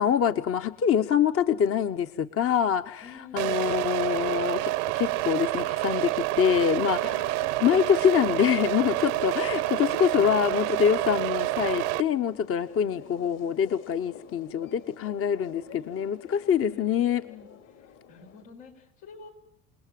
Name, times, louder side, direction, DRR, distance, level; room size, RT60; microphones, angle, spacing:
voice 1, 0.0-7.3 7.6-17.2, left 8 dB, 40° left, 10 dB, 1.0 m, -25 dB
voice 2, 3.0-3.6 9.8-10.9 16.6-17.5 17.8-19.3, left 5 dB, 85° left, 2 dB, 5.7 m, -49 dB
sound 1, 3.4-12.0, right 20 dB, 80° right, 1.0 m, -28 dB
sound 2, 6.9-18.4, left 8 dB, 65° left, 4.1 m, -48 dB
28.5 x 19.0 x 7.6 m, 0.69 s
supercardioid pair, 85°, 34 cm